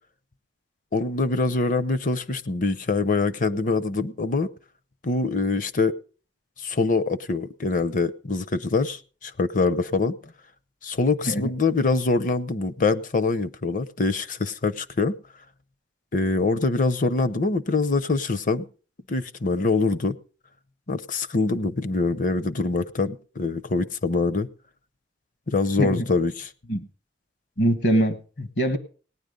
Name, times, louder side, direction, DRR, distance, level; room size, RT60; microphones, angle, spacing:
voice 1, 0.9-4.5 5.0-5.9 6.6-10.2 10.8-15.2 16.1-18.7 19.1-20.2 20.9-24.5 25.5-26.5, left 3 dB, 45° left, 0.7 m, -24 dB
voice 2, 27.6-28.8, equal, 70° left, 1.5 m, -23 dB
18.0 x 10.0 x 5.2 m
head